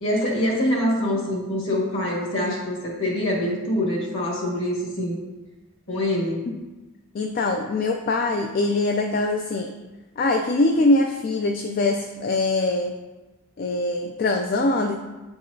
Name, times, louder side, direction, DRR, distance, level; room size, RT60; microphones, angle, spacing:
voice 1, 0.0-5.2 5.9-6.4, left 1 dB, 60° left, -3 dB, 1.7 m, -24 dB
voice 2, 7.1-9.7 10.2-12.9 13.6-15.0, left 2 dB, 45° left, 4 dB, 0.3 m, -23 dB
8.2 x 4.7 x 2.7 m, 1.1 s
head